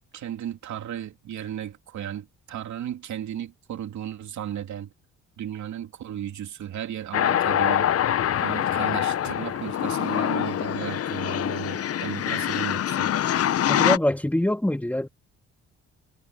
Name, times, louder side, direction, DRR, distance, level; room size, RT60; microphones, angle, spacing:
voice 1, 0.1-4.9 5.4-7.9 8.4-13.1, right 10 dB, 70° right, 3.0 m, -35 dB
sound 1, 7.1-14.0, left 10 dB, 50° left, 0.8 m, -24 dB
voice 2, 13.7-15.1, left 1 dB, 5° left, 1.7 m, -24 dB
cardioid pair, 90°, 30 cm